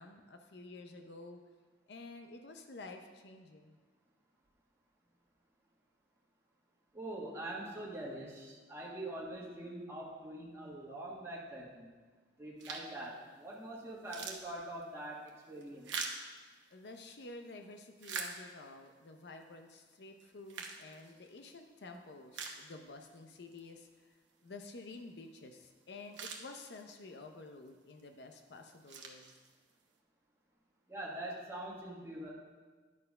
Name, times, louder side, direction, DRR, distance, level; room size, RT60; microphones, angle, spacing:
voice 1, 0.0-1.4 1.9-3.8 16.7-24.2 24.4-29.3, left 3 dB, 65° left, 5 dB, 0.6 m, -51 dB
voice 2, 6.9-11.9 12.4-15.9 30.9-32.3, right 1 dB, 15° right, -5 dB, 1.4 m, -44 dB
sound 1, 12.6-13.0 13.5-13.6 13.9-17.1 17.6-18.9 19.4-19.5 20.2-21.5 21.9-22.0 22.3-23.2 23.5-23.6 25.6-25.7 25.9-27.1 27.7-28.0 28.5-29.8, right 5 dB, 80° right, 1.0 m, -44 dB
11.0 x 4.5 x 5.3 m, 1.4 s
head